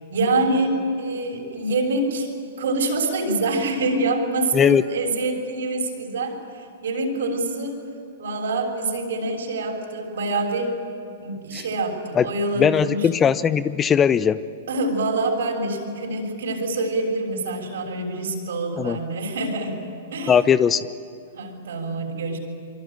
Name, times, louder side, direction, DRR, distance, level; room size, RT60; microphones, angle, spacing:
voice 1, 0.1-2.3 2.6-7.8 8.2-10.8 11.2-13.1 14.7-19.8 20.1-20.4 21.3-22.4, right 2 dB, 70° right, 1 dB, 6.7 m, -25 dB
voice 2, 4.5-4.8 11.5-11.6 12.1-12.3 12.6-14.4 18.8-19.0 20.3-20.8, left 7 dB, 20° left, 15 dB, 0.7 m, -19 dB
25.5 x 24.5 x 9.1 m, 2.6 s
hypercardioid pair, 110°, 0 cm